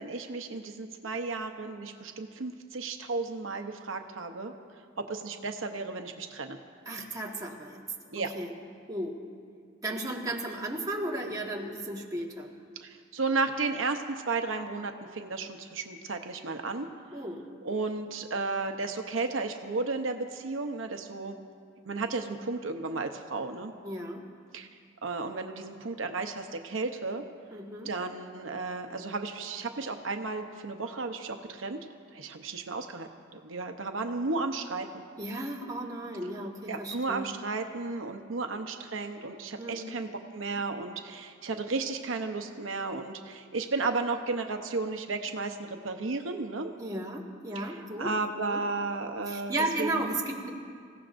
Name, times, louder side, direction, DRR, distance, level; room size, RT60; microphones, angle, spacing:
voice 1, 0.0-4.5 5.0-6.6 8.1-8.3 12.8-16.9 17.6-21.3 21.9-23.7 24.5-24.7 25.0-27.2 27.8-31.8 32.1-35.0 36.7-46.7 47.5-49.5 49.8-50.1, right 3 dB, 85° right, 5 dB, 0.8 m, -33 dB
voice 2, 6.8-7.8 8.3-8.5 8.9-9.2 9.8-12.5 17.1-17.4 23.8-24.2 27.5-27.9 35.2-37.3 39.6-39.9 46.8-48.1 48.5-48.6 49.3-50.5, right 1 dB, 20° right, -2 dB, 1.6 m, -34 dB
26.5 x 16.0 x 2.6 m, 2.2 s
head